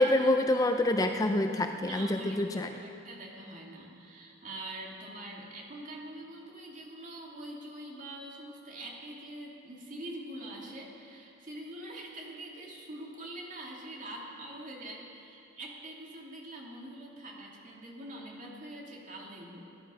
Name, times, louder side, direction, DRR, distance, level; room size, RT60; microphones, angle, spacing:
voice 1, 0.0-2.7, left 1 dB, 20° left, 5 dB, 0.5 m, -26 dB
voice 2, 1.8-19.6, right 1 dB, 40° right, -2 dB, 2.3 m, -44 dB
18.0 x 11.0 x 5.4 m, 2.7 s
head